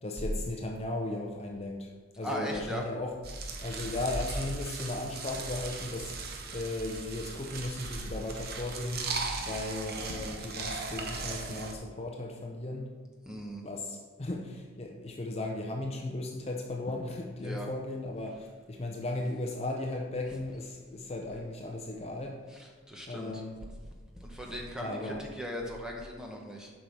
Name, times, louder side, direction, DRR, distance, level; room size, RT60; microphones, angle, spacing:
voice 1, 0.0-3.1 3.6-12.9 13.6-22.4 23.1-23.6 24.8-25.2, left 2 dB, 30° left, 1 dB, 0.6 m, -36 dB
voice 2, 2.2-2.8 13.2-13.6 17.4-17.7 22.5-23.4 24.2-26.7, equal, 5° right, 0 dB, 0.9 m, -38 dB
sound 1, 3.2-11.7, right 3 dB, 50° right, 0.7 m, -38 dB
7.6 x 5.4 x 4.6 m, 1.5 s
head